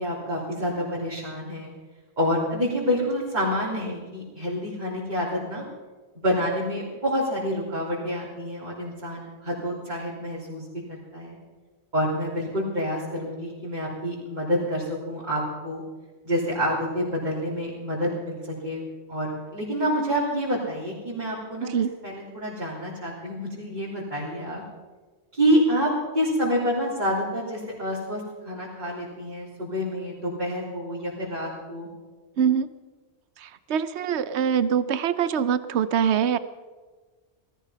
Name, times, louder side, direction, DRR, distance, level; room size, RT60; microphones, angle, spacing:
voice 1, 0.0-1.7 2.2-5.6 6.2-11.4 11.9-15.8 16.2-18.8 19.1-24.6 25.3-25.9 26.1-31.9, equal, 45° right, -8 dB, 3.5 m, -28 dB
voice 2, 32.4-32.7 33.4-36.4, right 8 dB, 90° right, 14 dB, 1.0 m, -24 dB
17.5 x 14.0 x 5.6 m, 1.3 s
omnidirectional pair, 1.1 m